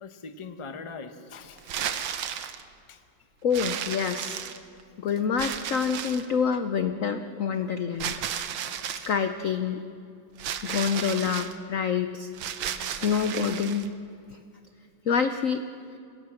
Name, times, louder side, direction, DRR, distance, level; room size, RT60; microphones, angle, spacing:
voice 1, 0.0-2.4 2.9-3.0, left 4 dB, 25° left, 7 dB, 0.7 m, -42 dB
sound 1, 1.6-2.6 3.5-4.8 5.4-6.3 8.0-9.1 10.4-11.5 12.3-13.9, right 9 dB, 80° right, 1.8 m, -33 dB
voice 2, 3.4-4.4 5.0-8.1 8.9-9.8 10.6-12.3 12.9-13.9 15.1-15.6, left 6 dB, 65° left, 9 dB, 0.8 m, -27 dB
26.0 x 16.5 x 7.6 m, 2.4 s
omnidirectional pair, 2.2 m